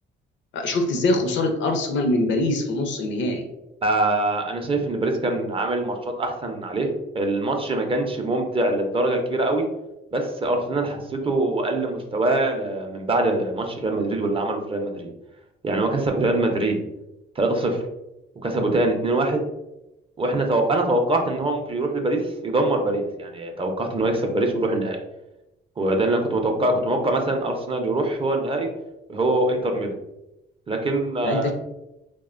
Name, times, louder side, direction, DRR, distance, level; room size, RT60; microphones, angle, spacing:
voice 1, 0.5-3.5 31.2-31.5, left 2 dB, 70° left, 5 dB, 0.5 m, -23 dB
voice 2, 3.8-9.7 10.1-15.1 15.6-16.8 17.4-17.8 18.4-19.4 20.2-25.0 25.8-28.7 29.1-30.0 30.7-31.5, right 2 dB, 25° right, 3 dB, 0.4 m, -23 dB
2.7 x 2.1 x 2.4 m, 0.91 s
cardioid pair, 90°, 20 cm